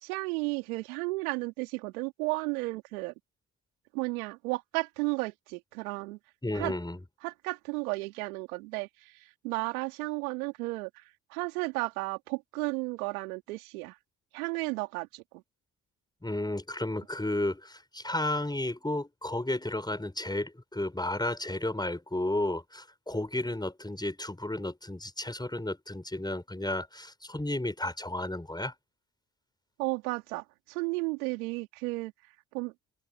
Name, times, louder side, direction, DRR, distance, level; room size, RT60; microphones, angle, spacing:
voice 1, 0.0-3.1 3.9-6.2 6.5-6.7 7.2-8.9 9.4-10.9 11.3-13.9 14.3-15.4 29.8-32.1 32.5-32.7, right 25 dB, 85° right, 3.9 m, -33 dB
voice 2, 6.4-7.0 16.2-28.7, left 1 dB, 10° left, 6.2 m, -33 dB
open air
hypercardioid pair, 60°, 42 cm